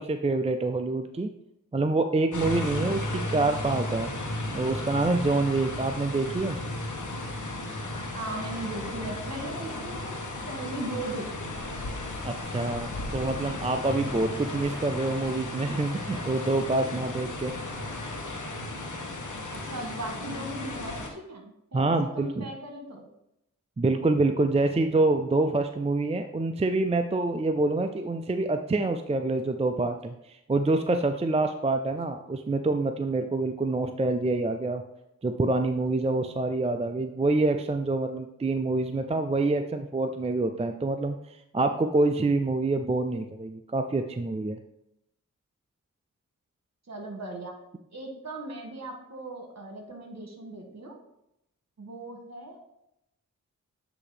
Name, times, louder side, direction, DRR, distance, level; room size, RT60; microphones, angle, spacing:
voice 1, 0.0-1.3 1.7-4.1 4.5-6.6 12.2-17.5 21.7-22.5 23.8-34.8 35.2-44.6, right 2 dB, 20° right, 7 dB, 0.4 m, -26 dB
sound 1, 2.3-21.1, left 2 dB, 65° left, 1.2 m, -35 dB
voice 2, 8.1-10.1 10.5-11.7 19.5-23.1 46.9-47.5 47.9-51.0 51.8-52.6, right 2 dB, 55° right, 2 dB, 1.6 m, -38 dB
8.4 x 2.9 x 4.9 m, 0.83 s
cardioid pair, 45°, 33 cm